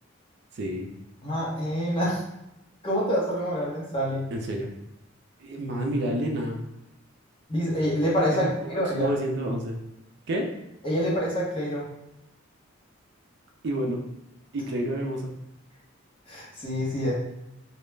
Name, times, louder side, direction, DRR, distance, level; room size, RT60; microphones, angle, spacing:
voice 1, 0.5-0.9 4.3-4.7 5.4-6.6 8.3-9.8 10.3-10.4 13.6-14.0 14.5-15.3, right 1 dB, 60° right, 1 dB, 0.4 m, -29 dB
voice 2, 1.2-2.2 2.8-4.2 7.5-9.1 10.8-11.9 16.3-17.1, equal, 25° left, -6 dB, 0.8 m, -26 dB
2.2 x 2.1 x 3.1 m, 0.88 s
head